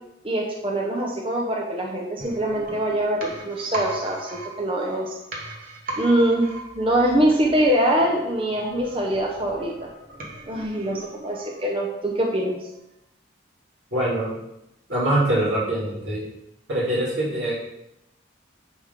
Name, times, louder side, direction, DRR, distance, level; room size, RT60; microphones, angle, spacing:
voice 1, 0.2-5.1 6.0-6.5 6.8-9.9 10.5-12.7, right 1 dB, 30° right, -1 dB, 0.7 m, -23 dB
sound 1, 2.2-11.9 12.2-12.3, right 2 dB, 45° right, 1.2 m, -38 dB
voice 2, 13.9-14.3 14.9-16.2 16.7-17.5, right 1 dB, 65° right, -8 dB, 2.6 m, -23 dB
9.7 x 3.5 x 3.7 m, 0.87 s
head